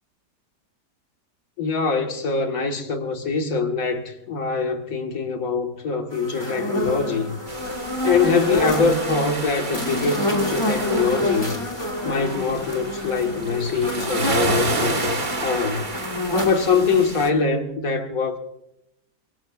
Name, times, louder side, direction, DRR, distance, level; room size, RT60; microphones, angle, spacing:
voice 1, 1.6-7.4 8.0-11.5 12.0-15.8 16.4-18.4, left 4 dB, 55° left, 1.8 m, -23 dB
sound 1, 6.1-17.0, left 1 dB, 15° left, 2.2 m, -28 dB
sound 2, 7.5-17.3, right 3 dB, 30° right, 1.3 m, -31 dB
23.5 x 22.5 x 2.4 m
omnidirectional pair, 1.8 m